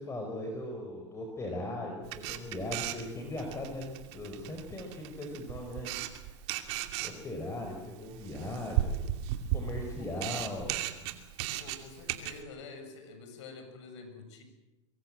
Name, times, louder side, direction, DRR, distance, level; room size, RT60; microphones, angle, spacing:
voice 1, 0.0-6.4 7.0-9.1 9.5-10.8 11.1-11.3, left 1 dB, 20° left, 2 dB, 4.9 m, -39 dB
Camera, 2.0-12.4, right 12 dB, 60° right, 2.6 m, -36 dB
voice 2, 11.6-14.4, left 4 dB, 70° left, 6 dB, 7.1 m, -47 dB
23.5 x 23.0 x 7.7 m, 1.1 s
hypercardioid pair, 115°, 16 cm